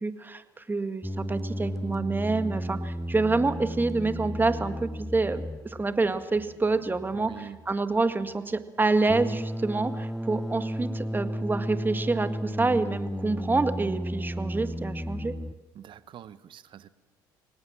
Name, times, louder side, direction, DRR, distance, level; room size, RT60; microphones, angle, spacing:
voice 1, 0.0-5.4 5.8-15.3, right 3 dB, 20° right, 10 dB, 1.8 m, -27 dB
sound 1, 1.0-15.5, equal, 5° left, 0.8 m, -34 dB
voice 2, 7.1-7.6 15.7-16.9, right 9 dB, 50° right, 16 dB, 1.1 m, -45 dB
24.0 x 19.0 x 7.5 m, 1.1 s
hypercardioid pair, 65°, 10 cm